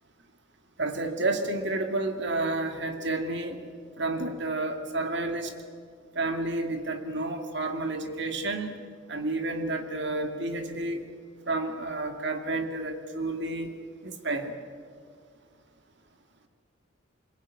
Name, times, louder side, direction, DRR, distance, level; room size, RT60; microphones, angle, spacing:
voice 1, 0.8-3.6 4.0-5.5 6.2-8.7 9.1-11.0 11.5-13.7 14.0-14.5, right 2 dB, 55° right, 5 dB, 2.4 m, -30 dB
25.0 x 22.0 x 9.7 m, 2.1 s
head